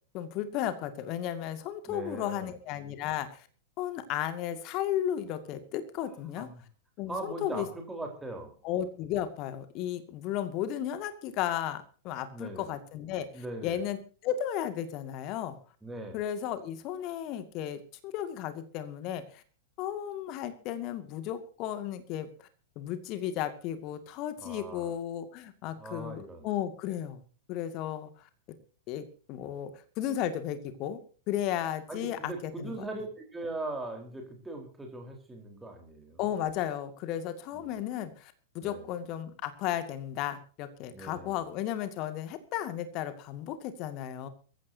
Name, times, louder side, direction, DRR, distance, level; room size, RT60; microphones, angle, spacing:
voice 1, 0.1-3.5 3.8-6.5 7.0-7.7 8.6-14.0 14.2-15.6 16.1-19.4 19.8-22.5 22.8-27.2 27.5-28.1 28.5-28.6 28.9-31.0 31.3-32.9 36.2-44.3, left 11 dB, 40° left, 10 dB, 2.2 m, -34 dB
voice 2, 1.9-2.5 6.4-6.6 7.1-8.5 12.3-12.7 13.3-13.8 15.8-16.2 24.4-24.9 25.8-26.5 31.9-36.2 37.5-37.8 38.6-38.9 40.9-41.4, right 2 dB, 10° right, 2 dB, 4.2 m, -40 dB
22.5 x 15.5 x 2.8 m, 0.40 s
figure-of-eight pair, 95°, 0 cm